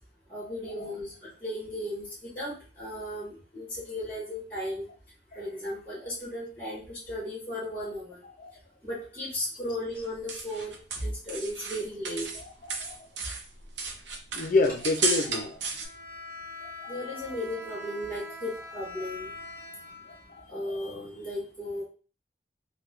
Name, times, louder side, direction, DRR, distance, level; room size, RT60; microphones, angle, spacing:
voice 1, 0.3-4.8 5.3-8.2 8.8-12.3 16.9-19.3 20.5-21.8, left 1 dB, 10° left, 1.4 m, -35 dB
sound 1, 10.0-12.4 12.7-15.9, right 4 dB, 90° right, 0.7 m, -33 dB
voice 2, 12.3-13.0 14.3-15.6 16.6-17.2 18.9-19.1 20.5-20.8, left 3 dB, 50° left, 0.4 m, -29 dB
Bowed string instrument, 15.7-20.8, left 2 dB, 20° right, 0.7 m, -43 dB
3.6 x 2.2 x 3.0 m
head